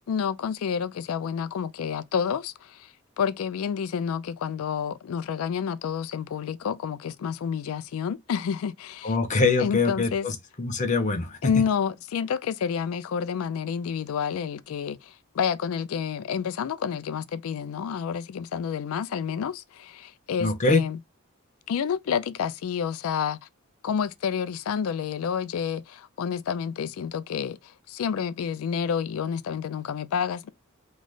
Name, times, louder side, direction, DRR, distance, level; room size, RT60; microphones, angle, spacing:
voice 1, 0.1-9.1 9.6-10.3 11.4-21.0 21.7-23.4 23.8-30.5, left 7 dB, 70° left, 0.3 m, -29 dB
voice 2, 9.0-11.4 20.4-20.8, left 3 dB, 35° left, 0.6 m, -24 dB
3.1 x 2.1 x 3.8 m
head